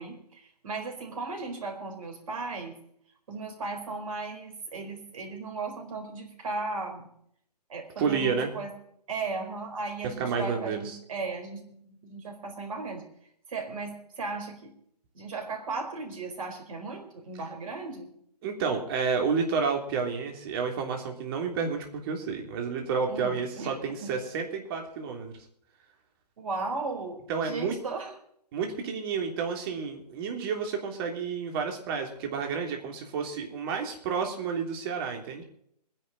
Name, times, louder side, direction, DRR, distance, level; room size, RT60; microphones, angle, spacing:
voice 1, 0.0-2.8 3.3-7.1 7.7-8.7 9.1-13.0 13.5-14.7 15.1-18.1 23.1-24.1 26.4-28.1, right 3 dB, 55° right, 3 dB, 4.5 m, -36 dB
voice 2, 8.0-8.5 10.2-11.0 18.4-25.3 27.3-27.7 28.5-35.4, right 5 dB, 35° right, 2 dB, 3.3 m, -30 dB
21.5 x 10.5 x 4.2 m, 0.69 s
figure-of-eight pair, 135°, 21 cm